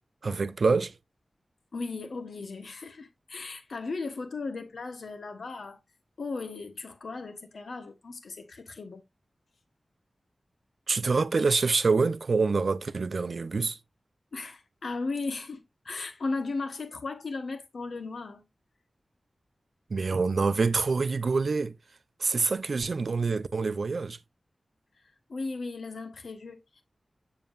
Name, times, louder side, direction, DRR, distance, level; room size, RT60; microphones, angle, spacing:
voice 1, 0.2-0.9 10.9-13.8 19.9-21.7 22.2-24.2, right 4 dB, 70° right, 0.6 m, -26 dB
voice 2, 1.7-5.8 6.2-9.0 14.3-18.4 25.3-26.8, left 3 dB, 80° left, 1.2 m, -36 dB
7.3 x 6.9 x 2.5 m
wide cardioid pair, 75°, 0 cm